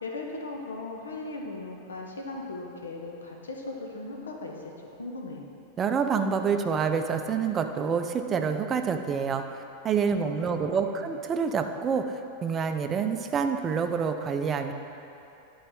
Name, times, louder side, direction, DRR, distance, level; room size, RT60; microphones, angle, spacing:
voice 1, 0.0-4.7 5.0-5.5 10.2-11.1, left 2 dB, 70° left, 0 dB, 0.9 m, -38 dB
voice 2, 5.8-9.4 9.8-14.7, right 6 dB, 25° right, 7 dB, 0.5 m, -27 dB
10.5 x 4.0 x 4.7 m, 2.8 s
figure-of-eight pair, 90°, 0 cm